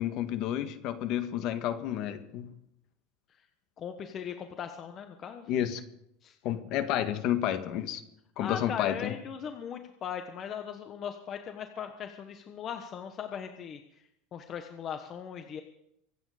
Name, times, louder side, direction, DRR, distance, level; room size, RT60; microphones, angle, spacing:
voice 1, 0.0-2.5 5.5-5.8 6.4-8.0 8.4-9.1, left 11 dB, 50° left, 9 dB, 1.7 m, -30 dB
voice 2, 3.8-5.5 6.2-6.3 8.4-13.8 14.3-15.6, left 8 dB, 35° left, 6 dB, 1.2 m, -38 dB
24.5 x 9.1 x 5.1 m, 0.78 s
supercardioid pair, 130°, 0 cm